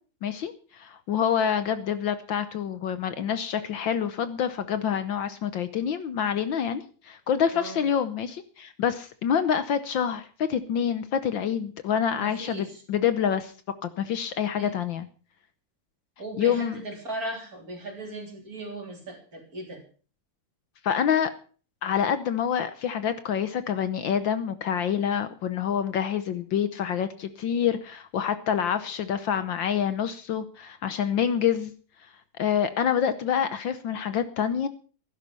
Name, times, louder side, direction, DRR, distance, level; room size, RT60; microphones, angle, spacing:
voice 1, 0.2-13.5 13.8-15.1 16.4-16.8 20.8-21.3 21.8-31.7 32.4-34.7, left 8 dB, 65° left, 11 dB, 1.5 m, -27 dB
voice 2, 7.5-7.9 12.2-12.8 14.6-14.7 16.2-19.8, right 1 dB, 40° right, 2 dB, 4.1 m, -37 dB
15.5 x 12.0 x 5.4 m, 0.41 s
omnidirectional pair, 2.4 m